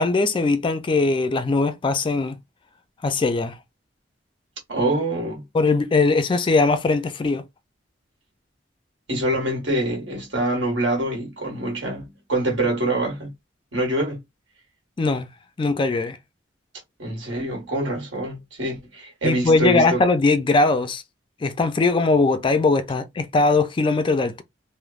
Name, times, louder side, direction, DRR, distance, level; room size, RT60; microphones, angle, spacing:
voice 1, 0.0-2.4 3.0-3.6 5.5-7.4 15.0-15.3 15.6-16.2 19.2-21.0 21.4-24.4, left 3 dB, 25° left, 0.3 m, -20 dB
voice 2, 4.7-5.4 9.1-13.3 13.7-14.2 17.0-20.0, right 1 dB, 75° right, 1.5 m, -25 dB
3.2 x 2.0 x 2.3 m
head